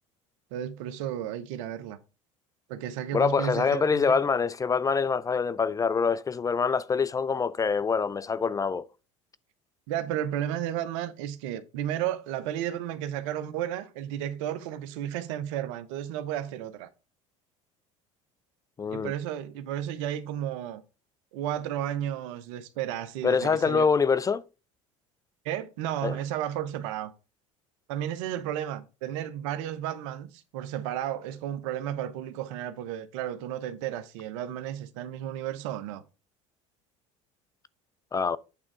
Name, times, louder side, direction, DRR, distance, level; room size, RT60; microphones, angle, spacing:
voice 1, 0.5-2.0 2.7-4.1 9.9-16.9 18.9-20.8 21.3-23.9 25.4-27.1 27.9-36.0, right 11 dB, 75° right, 0.9 m, -33 dB
voice 2, 3.1-8.9 18.8-19.1 23.2-24.4 26.0-26.2 38.1-38.4, left 5 dB, 20° left, 0.3 m, -25 dB
8.7 x 3.7 x 4.7 m
hypercardioid pair, 85°, 16 cm